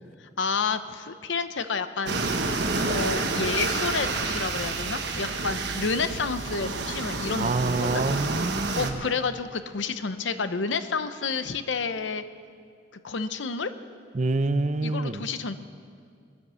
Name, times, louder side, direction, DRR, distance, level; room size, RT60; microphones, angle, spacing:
voice 1, 0.2-2.4 2.8-8.0 8.7-12.2 13.0-13.7 14.8-15.6, left 4 dB, 80° left, 11 dB, 0.8 m, -30 dB
sound 1, 2.1-8.9, right 3 dB, 65° right, 1.3 m, -29 dB
voice 2, 7.4-9.0 14.1-15.2, right 3 dB, 40° right, 12 dB, 0.5 m, -27 dB
19.0 x 9.9 x 7.0 m, 2.2 s
head